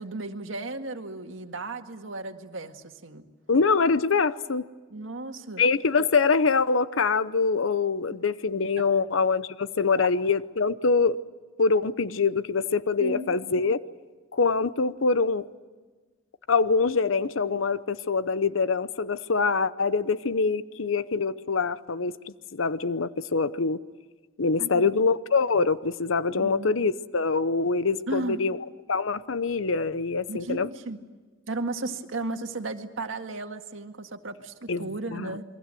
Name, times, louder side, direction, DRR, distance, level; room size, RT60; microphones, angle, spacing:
voice 1, 0.0-3.2 4.9-5.6 8.8-8.9 10.0-10.1 13.0-13.4 24.6-24.8 26.4-26.7 28.1-28.4 30.3-31.0 31.5-35.4, right 2 dB, 75° right, 5 dB, 1.9 m, -35 dB
voice 2, 3.5-4.6 5.6-11.2 11.6-13.8 14.3-15.5 16.5-23.8 24.4-28.6 28.9-30.7 34.7-35.4, left 4 dB, 80° left, 15 dB, 0.8 m, -24 dB
28.5 x 22.5 x 7.7 m, 1.4 s
head